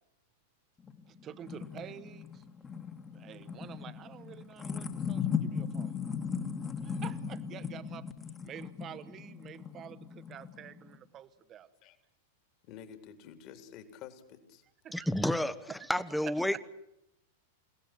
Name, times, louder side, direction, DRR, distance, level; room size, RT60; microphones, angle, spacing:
sound 1, 0.9-11.0, left 6 dB, 20° left, 2.1 m, -38 dB
voice 1, 1.1-2.4 3.1-6.0 6.8-8.1 8.4-11.7 14.8-15.1 15.8-15.9 16.2-16.6, right 10 dB, 30° right, 13 dB, 1.5 m, -48 dB
voice 2, 12.6-14.6, left 8 dB, 40° left, 8 dB, 3.6 m, -49 dB
voice 3, 14.9-16.6, left 1 dB, 5° left, 14 dB, 1.4 m, -30 dB
30.0 x 18.0 x 8.5 m, 0.83 s
figure-of-eight pair, 95°, 0 cm